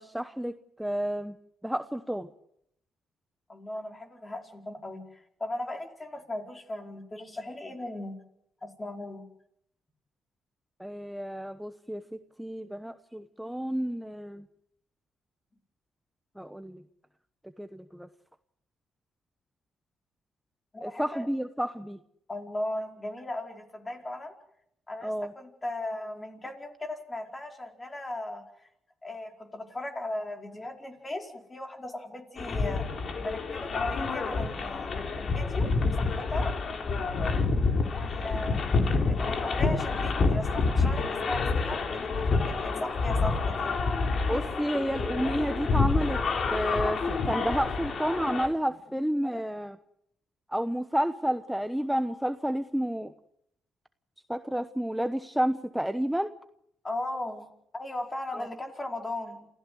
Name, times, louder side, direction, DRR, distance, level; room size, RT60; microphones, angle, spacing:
voice 1, 0.0-1.4 1.6-2.3 10.8-14.5 16.4-16.8 17.6-18.1 20.8-22.0 25.0-25.3 44.3-46.2 46.5-49.8 50.5-53.1 54.3-56.3 58.3-58.5, equal, 5° right, 9 dB, 1.1 m, -30 dB
voice 2, 3.5-8.2 8.6-9.2 20.7-21.3 22.3-24.3 24.9-25.1 25.3-28.4 29.0-32.9 33.2-36.5 37.9-43.7 49.2-49.4 56.8-57.5 57.7-59.5, left 1 dB, 20° left, 3 dB, 4.9 m, -37 dB
sound 1, 32.4-48.5, left 4 dB, 50° left, 3.5 m, -28 dB
28.0 x 15.5 x 7.9 m, 0.75 s
cardioid pair, 90°, 0 cm